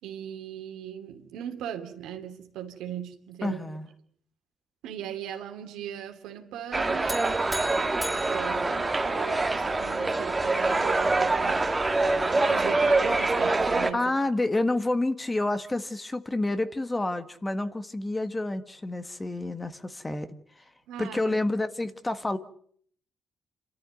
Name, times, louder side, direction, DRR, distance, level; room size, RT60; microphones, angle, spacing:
voice 1, 0.0-3.6 4.8-11.7 12.2-14.1 20.9-21.3, right 10 dB, 90° right, 5 dB, 2.9 m, -39 dB
voice 2, 3.4-3.9 13.9-20.3 21.0-22.4, left 2 dB, 15° left, 11 dB, 1.7 m, -29 dB
sound 1, 6.7-13.9, right 2 dB, 20° right, 1.9 m, -25 dB
sound 2, 7.1-9.6, right 1 dB, 5° right, 3.7 m, -37 dB
27.5 x 13.5 x 9.3 m, 0.62 s
cardioid pair, 90°, 0 cm